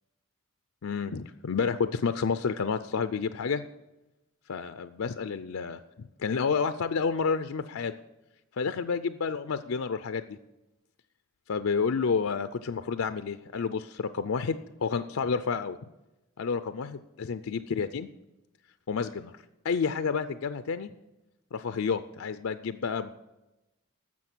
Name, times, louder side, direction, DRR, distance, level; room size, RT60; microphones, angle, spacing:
voice 1, 0.8-3.6 4.5-7.9 8.5-10.4 11.5-15.8 16.4-18.1 18.9-20.9 21.5-23.1, left 5 dB, 75° left, 10 dB, 0.4 m, -30 dB
12.0 x 7.5 x 6.1 m, 0.97 s
head